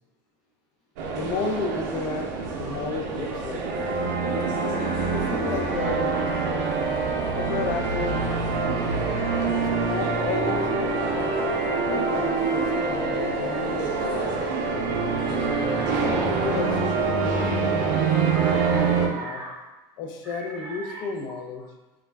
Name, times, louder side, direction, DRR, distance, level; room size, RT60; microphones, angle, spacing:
sound 1, 1.0-19.1, right 4 dB, 70° right, 0.4 m, -25 dB
voice 1, 1.1-3.9 5.1-6.8 7.3-8.4 9.4-11.4 11.9-14.7 15.8-18.0 18.5-19.4 20.0-21.7, left 4 dB, 45° left, 3 dB, 0.4 m, -33 dB
voice 2, 9.0-9.4 10.2-10.3 12.6-12.8 14.0-14.4 15.1-16.5 18.3-19.6 20.2-21.0, right 2 dB, ahead, -8 dB, 0.6 m, -40 dB
2.3 x 2.0 x 3.2 m, 1.1 s
supercardioid pair, 150°, 11 cm